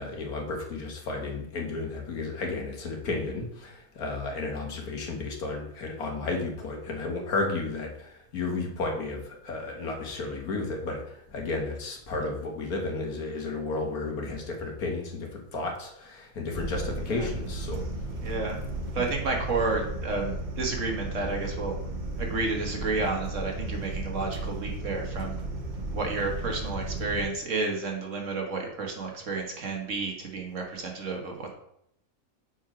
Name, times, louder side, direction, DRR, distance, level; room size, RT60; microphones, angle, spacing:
voice 1, 0.0-17.8, left 3 dB, 90° left, 1 dB, 1.8 m, -33 dB
sound 1, 16.5-27.2, right 1 dB, 40° right, 0.9 m, -34 dB
voice 2, 18.2-18.6 18.9-21.7 22.2-25.4 25.9-31.5, right 3 dB, 60° right, 1 dB, 1.6 m, -31 dB
6.4 x 4.6 x 4.9 m, 0.74 s
omnidirectional pair, 1.5 m